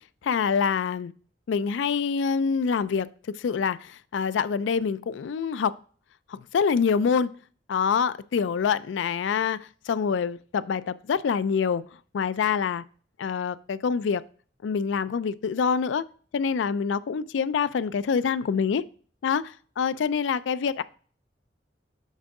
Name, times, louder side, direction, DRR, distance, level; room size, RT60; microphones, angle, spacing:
voice 1, 0.2-1.1 1.5-3.1 3.3-5.7 6.3-7.3 7.7-11.8 12.1-12.8 13.2-14.2 14.6-16.0 16.3-18.8 19.2-20.8, left 6 dB, 85° left, 0.4 m, -26 dB
7.4 x 3.7 x 4.7 m
head